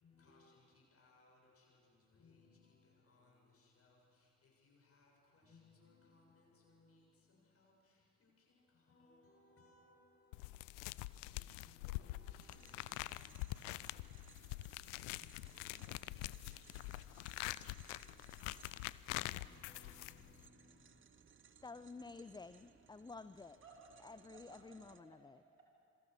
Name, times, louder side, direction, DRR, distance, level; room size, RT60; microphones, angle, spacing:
voice 1, 0.0-21.0, left 3 dB, 35° left, 7.5 m, -69 dB
sound 1, 10.3-20.5, left 19 dB, 70° left, 0.6 m, -45 dB
sound 2, 12.4-25.0, right 6 dB, 30° right, 1.2 m, -65 dB
voice 2, 21.6-23.6 24.0-25.3, left 4 dB, 10° left, 0.5 m, -52 dB
voice 3, 23.6-25.7, right 3 dB, 90° right, 3.1 m, -62 dB
26.5 x 23.0 x 6.6 m
figure-of-eight pair, 45°, 40 cm